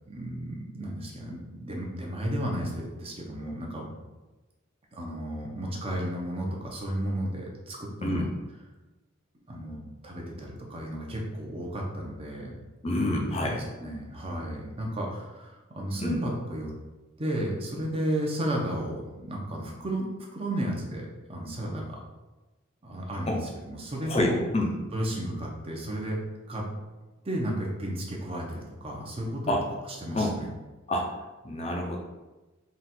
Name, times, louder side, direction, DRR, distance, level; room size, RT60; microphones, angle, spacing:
voice 1, 0.1-3.9 4.9-8.2 9.5-12.5 13.4-16.7 17.2-22.0 22.8-24.4 24.9-26.2 26.5-26.6 27.2-29.5 29.9-30.5, right 1 dB, 30° right, -2 dB, 0.7 m, -33 dB
voice 2, 12.8-13.6 16.0-16.2 23.3-23.4 24.1-24.7 29.5-29.6 30.1-30.3 30.9-31.0 31.4-32.0, left 1 dB, 30° left, 0 dB, 0.5 m, -27 dB
3.9 x 2.4 x 4.2 m, 1.1 s
head